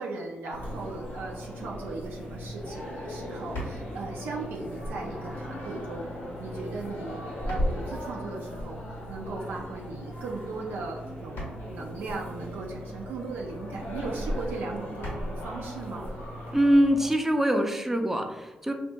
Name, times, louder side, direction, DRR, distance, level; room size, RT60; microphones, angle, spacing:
voice 1, 0.0-8.8 9.1-16.1, right 3 dB, 80° right, -1 dB, 0.4 m, -38 dB
sound 1, 0.5-17.1, equal, 85° left, 1.2 m, -36 dB
voice 2, 16.5-18.7, equal, 10° right, 4 dB, 0.5 m, -23 dB
2.7 x 2.5 x 2.2 m, 1.0 s
supercardioid pair, 45°, 3 cm